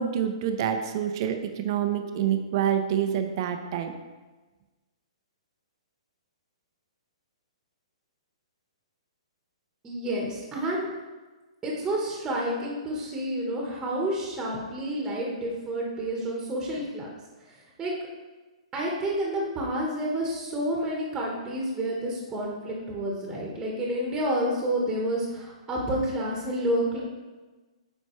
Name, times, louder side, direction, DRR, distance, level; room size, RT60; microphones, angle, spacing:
voice 1, 0.0-3.9, right 9 dB, 45° right, 6 dB, 0.6 m, -27 dB
voice 2, 9.8-10.9 11.6-17.1 17.8-17.9 18.7-27.0, right 1 dB, 15° right, -2 dB, 1.2 m, -29 dB
9.0 x 4.4 x 3.1 m, 1.2 s
hypercardioid pair, 150°, 3 cm